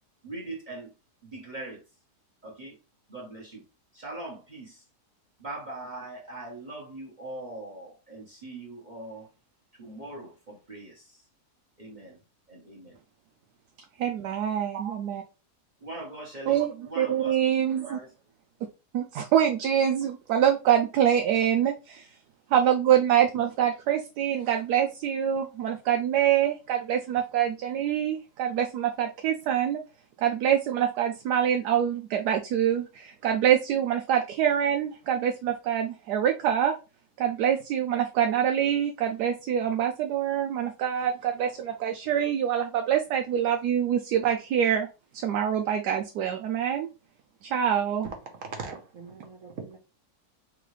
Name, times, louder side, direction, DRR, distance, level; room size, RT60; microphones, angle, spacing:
voice 1, 0.2-0.9 1.2-1.8 2.4-2.8 3.1-3.6 3.9-4.8 5.4-9.3 9.8-11.2 11.8-12.2 12.5-13.0 15.8-16.6 16.9-17.4 17.8-18.1, right 2 dB, 30° right, 1.1 m, -41 dB
voice 2, 14.0-15.2 16.5-18.0 18.9-22.1 22.5-29.8 30.2-36.7 37.2-44.9 45.1-46.9 47.4-48.1, right 9 dB, 90° right, 1.2 m, -25 dB
voice 3, 48.4-49.8, right 5 dB, 55° right, 1.4 m, -39 dB
3.8 x 3.7 x 3.2 m
omnidirectional pair, 1.7 m